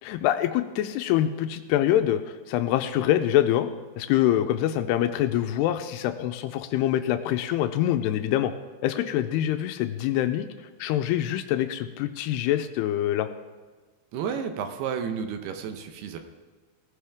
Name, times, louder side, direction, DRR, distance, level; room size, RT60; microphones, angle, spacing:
voice 1, 0.0-3.7 4.0-8.5 8.8-13.3, left 12 dB, 90° left, 8 dB, 2.7 m, -25 dB
voice 2, 14.1-16.2, right 7 dB, 80° right, 6 dB, 3.0 m, -31 dB
18.5 x 14.5 x 3.6 m, 1.4 s
omnidirectional pair, 4.7 m